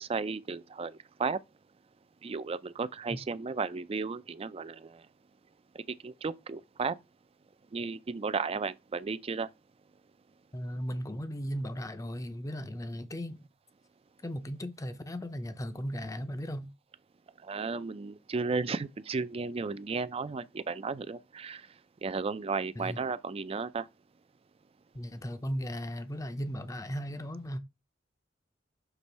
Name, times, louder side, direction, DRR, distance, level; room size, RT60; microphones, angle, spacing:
voice 1, 0.0-1.4 2.2-5.0 5.7-7.0 7.7-9.5 17.4-21.7 22.0-23.9, right 4 dB, 30° right, 0.4 m, -34 dB
voice 2, 10.5-13.4 14.2-16.7 22.8-23.0 24.9-27.6, equal, 20° left, 0.6 m, -36 dB
6.1 x 3.1 x 5.4 m
head